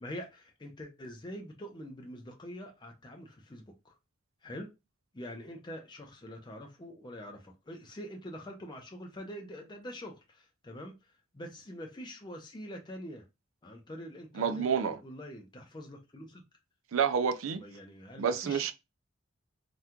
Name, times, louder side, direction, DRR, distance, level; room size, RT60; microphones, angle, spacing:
voice 1, 0.0-4.0 4.4-4.7 5.1-10.9 11.3-13.2 13.6-16.4 17.5-18.7, equal, 20° left, 0.5 m, -45 dB
voice 2, 14.4-15.0 16.9-17.6 18.2-18.7, right 7 dB, 70° right, 0.4 m, -29 dB
2.8 x 2.3 x 3.5 m
head